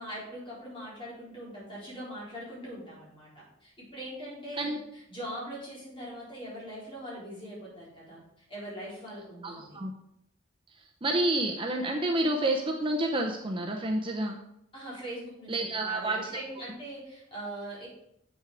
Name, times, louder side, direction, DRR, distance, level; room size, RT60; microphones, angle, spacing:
voice 1, 0.0-9.8 14.7-17.9, equal, 25° left, -6 dB, 4.0 m, -41 dB
voice 2, 9.4-9.9 11.0-14.4 15.5-16.2, right 1 dB, 25° right, 2 dB, 0.7 m, -29 dB
8.1 x 6.2 x 4.8 m, 0.77 s
head